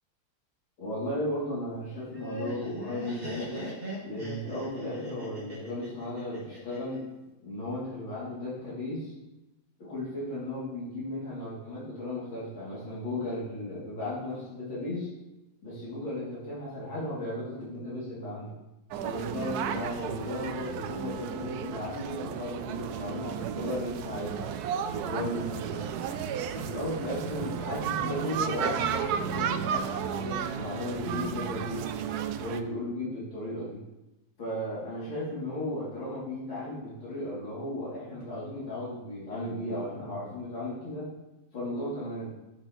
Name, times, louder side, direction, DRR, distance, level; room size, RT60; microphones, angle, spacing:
voice 1, 0.8-3.7 4.0-7.1 7.4-9.1 9.8-15.1 15.6-18.5 19.0-24.5 24.9-26.0 26.5-32.1 32.4-33.8 34.4-41.1 41.5-42.3, left 1 dB, 80° left, -8 dB, 3.6 m, -35 dB
Laughter, 1.9-7.0, left 1 dB, 20° right, 3.2 m, -39 dB
sound 1, 18.9-32.6, right 8 dB, 70° right, 0.9 m, -33 dB
12.5 x 6.2 x 3.1 m, 0.98 s
omnidirectional pair, 2.0 m